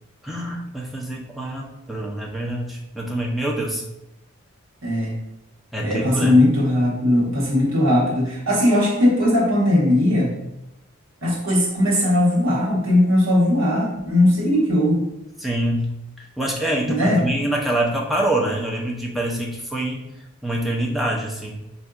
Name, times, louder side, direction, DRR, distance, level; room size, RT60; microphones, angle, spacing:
voice 1, 0.2-3.8 5.7-6.4 15.4-20.1 20.4-21.7, right 1 dB, ahead, -2 dB, 0.4 m, -25 dB
voice 2, 4.8-5.2 5.8-10.3 11.2-15.0 16.9-17.2, left 1 dB, 75° right, -5 dB, 1.2 m, -19 dB
4.6 x 2.6 x 2.3 m, 0.90 s
head